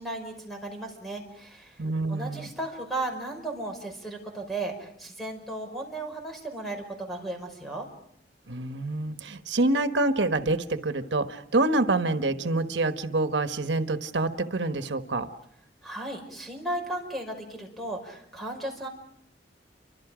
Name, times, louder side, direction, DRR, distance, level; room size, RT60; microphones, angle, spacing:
voice 1, 0.0-1.8 2.1-7.9 15.8-18.9, right 2 dB, ahead, 3 dB, 5.4 m, -35 dB
voice 2, 1.8-2.5 8.5-15.3, right 2 dB, 90° right, 9 dB, 1.2 m, -26 dB
29.5 x 25.0 x 5.0 m, 0.71 s
head